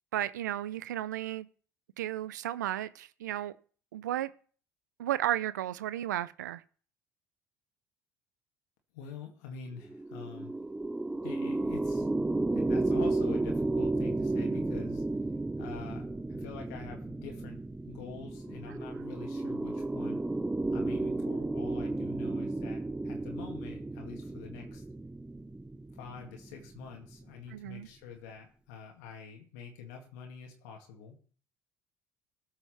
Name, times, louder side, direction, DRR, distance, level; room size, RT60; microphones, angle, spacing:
voice 1, 0.1-1.5 2.0-3.6 3.9-4.3 5.0-6.6 27.5-27.9, right 13 dB, 85° right, 0.4 m, -33 dB
voice 2, 8.9-10.5 11.2-12.1 12.5-15.0 15.6-20.2 20.7-24.8 26.0-31.2, left 6 dB, 75° left, 2.1 m, -46 dB
sound 1, 9.8-27.3, right 2 dB, 10° right, 0.5 m, -33 dB
13.5 x 5.7 x 5.6 m
hypercardioid pair, 65°, 9 cm